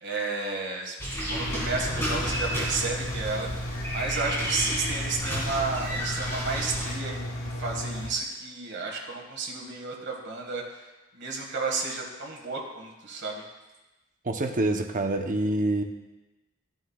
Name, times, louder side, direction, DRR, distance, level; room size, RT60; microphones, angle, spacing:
voice 1, 0.0-0.9 1.3-10.9 11.1-13.4, right 3 dB, 60° right, -1 dB, 1.7 m, -32 dB
sound 1, 1.0-6.9, equal, 15° left, 2.2 m, -32 dB
Engine, 1.3-8.1, left 1 dB, 80° left, 1.1 m, -34 dB
voice 2, 14.2-15.8, right 2 dB, 40° right, 4 dB, 0.7 m, -26 dB
13.0 x 7.8 x 2.4 m, 1.1 s
head